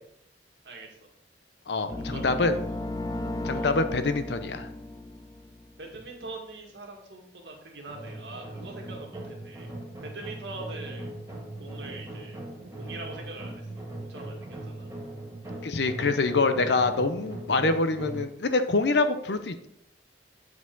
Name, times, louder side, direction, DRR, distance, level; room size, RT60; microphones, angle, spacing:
voice 1, 0.6-1.1 1.9-2.8 3.5-3.7 5.8-9.7 10.0-11.1 11.6-12.4 12.8-14.9, right 2 dB, 70° right, 0 dB, 1.8 m, -43 dB
voice 2, 1.7-2.6 3.4-4.7 15.6-19.7, left 3 dB, 70° left, 10 dB, 0.7 m, -25 dB
sound 1, 1.9-5.9, left 1 dB, 20° left, 0.4 m, -35 dB
sound 2, 7.9-18.2, right 1 dB, 15° right, 1.9 m, -39 dB
8.3 x 5.0 x 3.8 m, 0.77 s
head